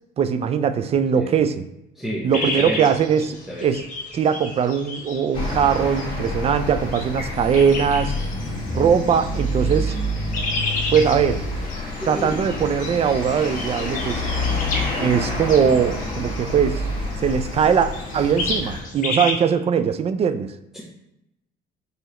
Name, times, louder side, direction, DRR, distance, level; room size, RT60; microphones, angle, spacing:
voice 1, 0.2-1.7 2.2-3.8 4.1-8.1 8.7-10.0 10.9-11.4 12.0-14.2 15.0-16.8 17.2-20.6, right 7 dB, 35° right, 10 dB, 0.3 m, -20 dB
voice 2, 2.0-3.0 3.5-3.7 12.0-12.4 14.4-14.6 20.7-20.8, equal, 5° right, -6 dB, 0.9 m, -31 dB
sound 1, 2.3-19.3, left 2 dB, 50° left, 1.1 m, -33 dB
sound 2, 5.3-18.8, left 1 dB, 30° left, 1.6 m, -28 dB
4.5 x 3.2 x 3.0 m, 0.84 s
cardioid pair, 110°, 17 cm